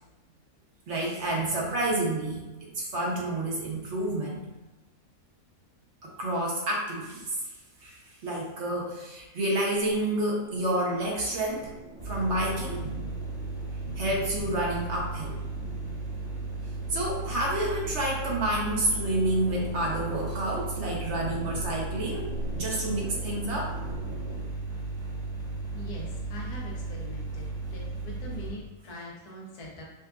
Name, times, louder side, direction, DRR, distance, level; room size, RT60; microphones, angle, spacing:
voice 1, 0.9-4.4 6.0-7.4 7.8-11.7 12.0-12.8 14.0-15.4 16.9-23.7, right 1 dB, 55° right, -2 dB, 0.9 m, -29 dB
sound 1, 9.6-24.5, right 1 dB, 75° right, 0.4 m, -44 dB
sound 2, 12.0-28.5, right 3 dB, 5° left, 0.9 m, -35 dB
voice 2, 25.7-29.8, left 1 dB, 90° left, -3 dB, 1.4 m, -43 dB
5.5 x 2.4 x 2.4 m, 1.1 s
omnidirectional pair, 1.6 m